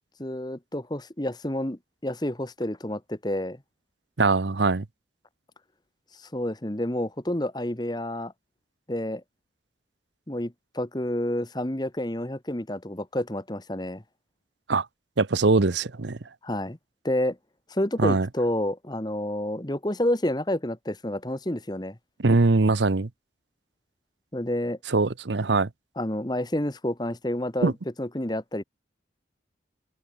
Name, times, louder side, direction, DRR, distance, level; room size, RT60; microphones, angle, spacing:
voice 1, 0.2-3.6 6.3-8.3 8.9-9.2 10.3-14.0 16.4-16.8 17.0-17.4 17.7-21.9 24.3-24.8 26.0-27.7 28.0-28.6, left 1 dB, 20° left, 1.4 m, -29 dB
voice 2, 4.2-4.8 14.7-14.9 15.2-16.2 18.0-18.3 22.2-23.1 24.9-25.7 27.6-27.7, right 3 dB, 75° right, 0.9 m, -22 dB
open air
head